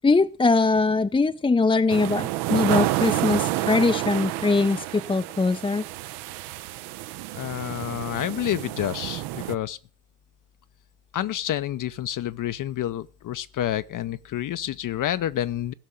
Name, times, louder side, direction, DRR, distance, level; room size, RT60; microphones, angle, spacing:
voice 1, 0.0-5.8, left 3 dB, 10° left, 0.6 m, -22 dB
sound 1, 1.9-9.5, right 16 dB, 60° right, 0.8 m, -29 dB
voice 2, 7.3-9.8 11.1-15.7, left 12 dB, 45° left, 0.7 m, -29 dB
16.0 x 6.4 x 7.5 m
figure-of-eight pair, 45°, 44 cm